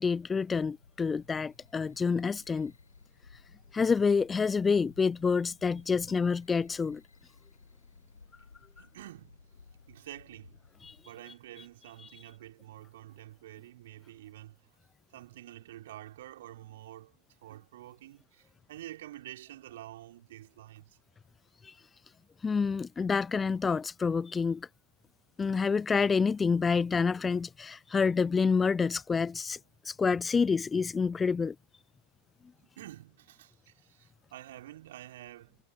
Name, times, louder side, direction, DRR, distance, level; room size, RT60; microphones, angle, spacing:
voice 1, 0.0-2.7 3.7-7.0 10.8-10.9 21.6-21.7 22.4-24.7 25.4-29.6 29.8-31.6, left 5 dB, 15° left, 0.3 m, -28 dB
sound 1, 0.7-11.0, left 4 dB, 75° left, 4.8 m, -58 dB
voice 2, 8.8-9.4 9.9-10.7 11.0-14.7 15.1-17.2 17.4-21.0 32.6-35.6, right 14 dB, 55° right, 5.2 m, -48 dB
figure-of-eight pair, 90°, 0 cm